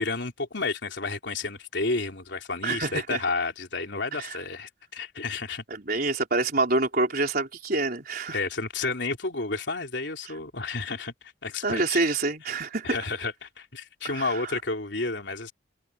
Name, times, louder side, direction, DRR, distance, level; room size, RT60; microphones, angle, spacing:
voice 1, 0.0-5.6 8.3-11.1 11.4-12.0 12.8-15.5, left 3 dB, 70° left, 3.6 m, -31 dB
voice 2, 2.6-3.2 4.1-4.4 5.7-8.4 11.6-12.9 14.0-14.5, right 3 dB, 50° right, 4.3 m, -27 dB
head